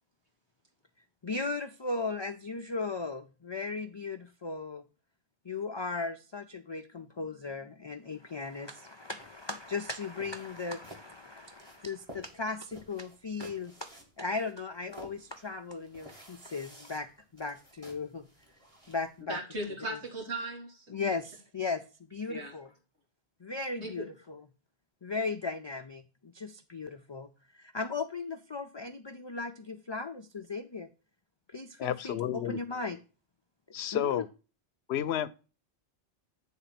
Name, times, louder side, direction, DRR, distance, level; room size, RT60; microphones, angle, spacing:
voice 1, 1.2-4.8 5.4-13.9 14.2-18.3 18.9-19.4 19.9-20.0 20.9-22.7 23.4-24.4 25.0-27.3 27.5-30.9 31.5-33.0 33.9-34.2, left 4 dB, 40° left, 0.4 m, -37 dB
sound 1, 9.2-19.2, right 1 dB, 30° right, 1.9 m, -54 dB
voice 2, 19.3-20.9 22.3-22.5 23.8-24.1, right 2 dB, 85° right, 2.4 m, -37 dB
voice 3, 31.8-32.6 33.7-34.3 34.9-35.3, left 10 dB, 75° left, 0.8 m, -31 dB
9.3 x 3.6 x 5.8 m
omnidirectional pair, 1.1 m